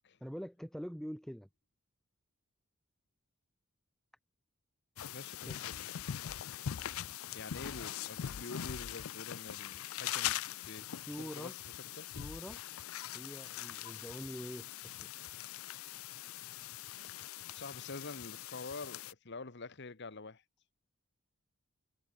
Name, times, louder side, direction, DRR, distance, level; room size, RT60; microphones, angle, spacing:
voice 1, 0.2-1.5 5.5-5.6 10.8-11.5 11.9-12.6 13.1-15.2, equal, ahead, 1.8 m, -45 dB
sound 1, 5.0-19.1, left 11 dB, 75° left, 0.5 m, -42 dB
voice 2, 5.1-6.1 7.3-12.1 17.5-20.4, left 3 dB, 50° left, 1.2 m, -47 dB
head